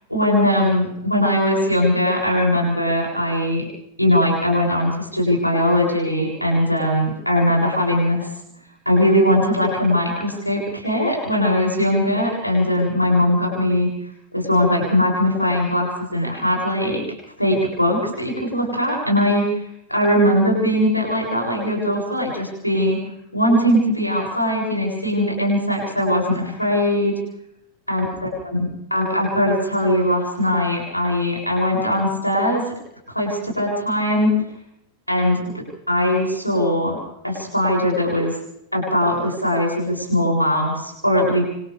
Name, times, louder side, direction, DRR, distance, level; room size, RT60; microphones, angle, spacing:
voice 1, 0.1-3.7 4.0-8.3 8.9-13.9 14.3-17.0 17.4-19.6 19.9-23.0 23.3-27.1 27.9-32.6 33.1-34.3 35.1-35.4 35.9-37.0 37.2-38.3 38.7-41.4, left 1 dB, 90° left, -2 dB, 7.7 m, -20 dB
28.5 x 27.0 x 3.6 m, 0.77 s
figure-of-eight pair, 90°, 0 cm